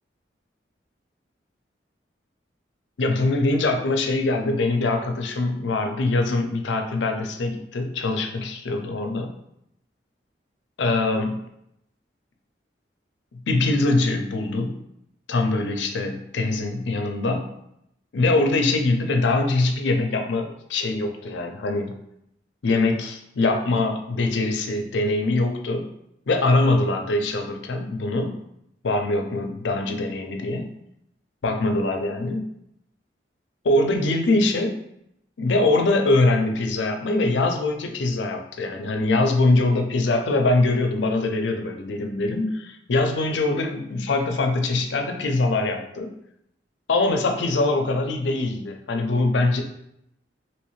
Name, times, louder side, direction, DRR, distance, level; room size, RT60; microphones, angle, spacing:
voice 1, 3.0-9.3 10.8-11.4 13.5-14.8 15.3-17.5 18.1-21.9 22.6-25.9 26.3-28.4 28.8-30.7 31.4-32.5 33.6-34.7 35.4-46.1 46.9-49.6, left 2 dB, 80° left, 4 dB, 0.5 m, -23 dB
3.1 x 3.0 x 3.1 m, 0.77 s
head